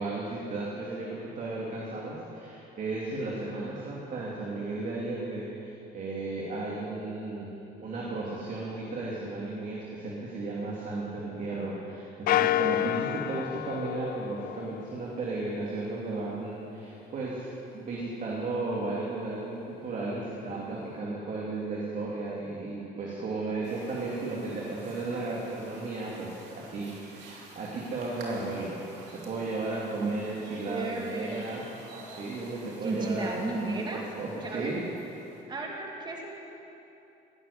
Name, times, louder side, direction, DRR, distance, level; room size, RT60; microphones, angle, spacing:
voice 1, 0.0-7.5 7.8-17.5 17.7-28.7 29.1-31.6 32.2-34.8, right 2 dB, 50° right, -4 dB, 2.8 m, -34 dB
sound 1, 12.3-15.0, left 14 dB, 60° left, 0.4 m, -29 dB
sound 2, 23.6-35.4, right 2 dB, 85° right, 3.2 m, -50 dB
voice 2, 30.7-31.6 32.8-34.1 34.4-34.7 35.5-36.4, right 2 dB, 25° right, -1 dB, 2.4 m, -34 dB
18.0 x 7.8 x 10.0 m, 2.9 s
cardioid pair, 110°, 17 cm